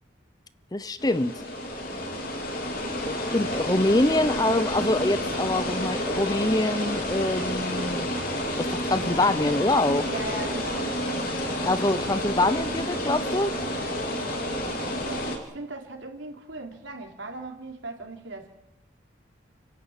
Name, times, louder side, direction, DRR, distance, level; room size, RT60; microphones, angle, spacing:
voice 1, 0.7-1.4 3.0-8.0 8.6-10.1 11.6-13.5, left 2 dB, 20° left, 0.7 m, -25 dB
sound 1, 1.0-15.4, left 1 dB, 50° left, 4.1 m, -30 dB
sound 2, 7.3-15.0, right 1 dB, 55° right, 5.5 m, -45 dB
voice 2, 10.0-11.0 14.8-18.5, right 2 dB, 80° right, 4.0 m, -38 dB
30.0 x 11.5 x 9.0 m
head